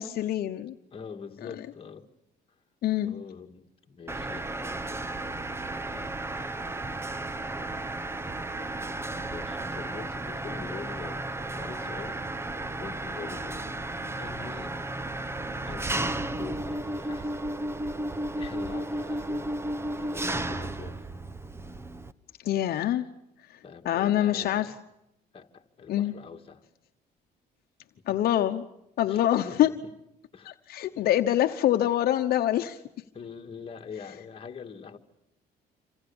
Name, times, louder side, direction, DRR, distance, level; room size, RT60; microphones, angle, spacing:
voice 1, 0.0-0.7 2.8-3.1 22.4-23.1 23.8-24.7 25.9-26.1 28.1-28.6 29.0-29.7 30.5-32.8, left 12 dB, 65° left, 1.1 m, -25 dB
voice 2, 0.9-2.1 3.0-5.2 5.8-6.2 9.3-12.2 12.8-13.8 14.2-14.8 15.6-17.4 18.3-19.5 20.0-21.1 23.6-24.8 25.3-26.6 28.1-28.2 29.1-29.9 30.3-30.6 30.9-31.1 33.1-35.0, left 6 dB, 35° left, 2.1 m, -44 dB
Mechanisms, 4.1-22.1, right 1 dB, 15° right, 1.1 m, -33 dB
27.0 x 26.0 x 7.1 m
cardioid pair, 110°, 17 cm